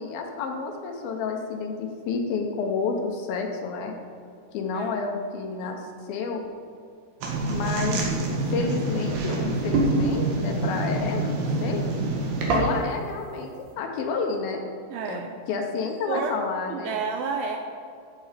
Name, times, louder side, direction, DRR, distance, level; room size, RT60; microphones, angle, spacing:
voice 1, 0.0-3.9 4.5-5.8 6.1-6.4 7.5-8.0 8.5-11.8 12.5-13.5 13.8-14.6 15.1-15.2 15.5-17.0, left 4 dB, 75° left, 3 dB, 2.3 m, -30 dB
sound 1, 7.2-13.0, right 2 dB, 70° right, 3.3 m, -26 dB
voice 2, 14.9-15.3 16.1-16.4 16.7-17.6, right 5 dB, 90° right, 3 dB, 2.0 m, -30 dB
15.0 x 6.1 x 5.1 m, 2.3 s
omnidirectional pair, 5.1 m